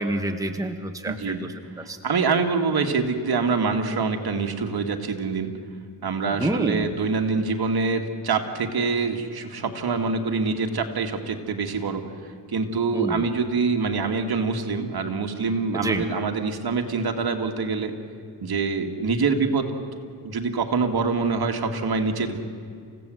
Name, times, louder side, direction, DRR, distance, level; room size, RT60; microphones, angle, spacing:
voice 1, 0.0-2.0 6.3-6.9 12.9-13.2 15.7-16.0, right 2 dB, 10° right, 5 dB, 1.3 m, -28 dB
voice 2, 1.0-1.5 2.0-5.5 6.0-17.9 18.4-19.7 20.2-22.4, right 4 dB, 60° right, 5 dB, 2.2 m, -25 dB
28.5 x 16.5 x 7.8 m, 2.2 s
wide cardioid pair, 110°, 43 cm